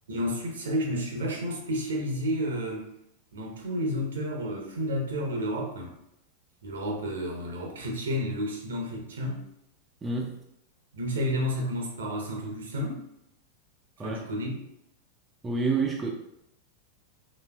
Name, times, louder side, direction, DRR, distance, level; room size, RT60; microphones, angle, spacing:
voice 1, 0.1-2.9 3.3-5.9 6.6-9.5 10.9-13.1 14.0-14.6, equal, 65° right, 0 dB, 0.7 m, -31 dB
voice 2, 10.0-10.4 14.0-14.2 15.4-16.1, right 4 dB, 15° right, 0 dB, 0.4 m, -28 dB
4.0 x 2.5 x 2.3 m, 0.80 s
figure-of-eight pair, 90°, 0 cm